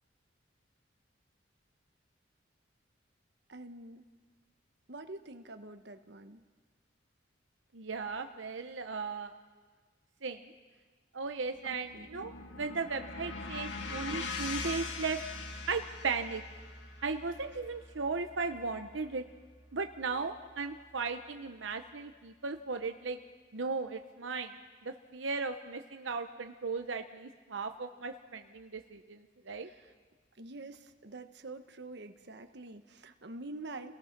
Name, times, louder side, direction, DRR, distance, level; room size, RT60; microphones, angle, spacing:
voice 1, 3.5-4.1 4.9-6.4 11.6-12.1 29.6-29.9 30.4-33.9, right 2 dB, 60° right, 8 dB, 1.2 m, -46 dB
voice 2, 7.7-9.3 10.2-10.5 11.1-15.2 15.7-16.4 17.0-19.2 19.7-23.2 23.5-24.5 24.8-29.7, right 4 dB, 80° right, 6 dB, 0.9 m, -36 dB
sound 1, 11.5-19.7, left 4 dB, 70° left, 1.9 m, -42 dB
30.0 x 18.5 x 6.0 m, 1.5 s
head